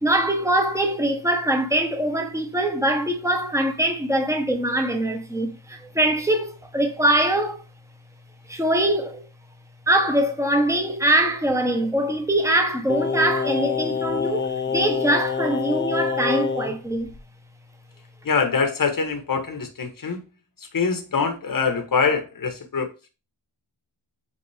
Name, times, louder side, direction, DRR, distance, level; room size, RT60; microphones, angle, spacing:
voice 1, 0.0-7.6 8.5-9.2 9.9-17.1, right 1 dB, 5° right, 1.4 m, -23 dB
Singing, 12.9-16.8 17.1-17.2, left 5 dB, 25° left, 0.8 m, -26 dB
voice 2, 18.2-20.2 20.7-23.1, left 5 dB, 45° left, 1.5 m, -24 dB
8.6 x 3.8 x 3.6 m
wide cardioid pair, 110°, 48 cm